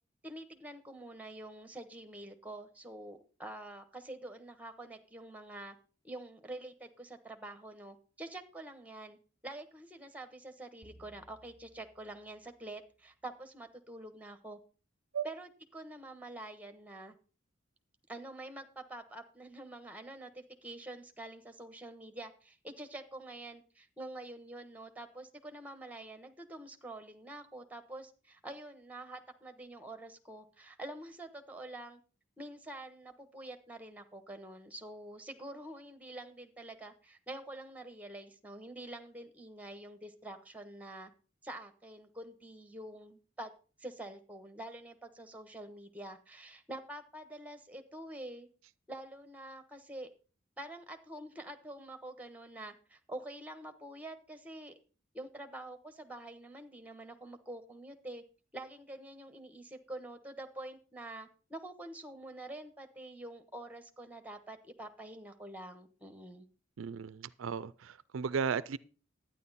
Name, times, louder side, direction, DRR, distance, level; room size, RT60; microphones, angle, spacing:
voice 1, 0.2-5.8 6.0-9.2 9.4-14.6 15.2-17.2 18.1-32.0 32.4-41.1 41.4-43.5 43.8-48.5 48.9-50.1 50.6-54.7 55.1-58.2 58.5-66.5, right 1 dB, 10° right, 1.1 m, -47 dB
sound 1, 10.8-13.3, right 1 dB, 20° left, 1.8 m, -62 dB
voice 2, 66.8-68.8, right 6 dB, 85° right, 0.4 m, -35 dB
11.5 x 9.6 x 4.1 m
head